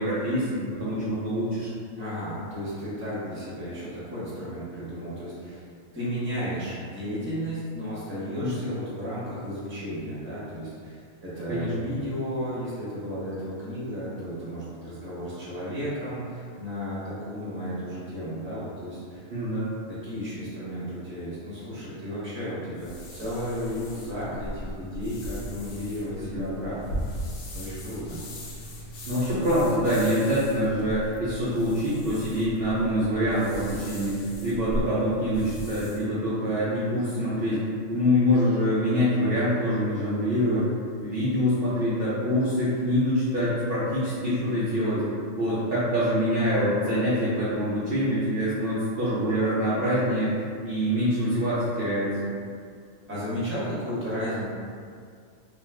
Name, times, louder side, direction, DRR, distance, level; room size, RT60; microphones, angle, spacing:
voice 1, 0.0-1.7 8.4-8.7 11.5-12.0 19.3-19.7 26.3-26.5 29.1-37.6 37.9-40.6 41.0-45.0 45.4-52.3, equal, 60° right, -10 dB, 0.7 m, -25 dB
voice 2, 2.0-5.7 5.9-19.2 19.9-27.2 27.5-28.2 53.1-54.4, equal, 10° right, -10 dB, 0.8 m, -33 dB
sound 1, 22.8-36.1, equal, 80° left, 1.0 m, -38 dB
2.4 x 2.3 x 3.3 m, 2.1 s
omnidirectional pair, 1.4 m